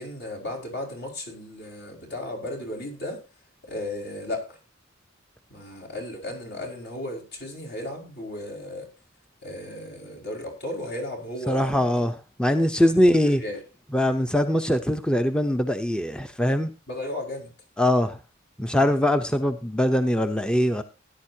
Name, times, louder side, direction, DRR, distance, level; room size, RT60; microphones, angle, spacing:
voice 1, 0.0-3.2 3.6-4.6 5.5-8.9 9.4-12.0 12.8-13.6 16.9-17.5 18.8-19.0, left 1 dB, 60° left, 5.3 m, -35 dB
voice 2, 11.5-13.4 13.9-16.7 17.8-18.2 18.6-20.8, left 1 dB, 5° left, 0.7 m, -22 dB
18.0 x 11.0 x 2.8 m
head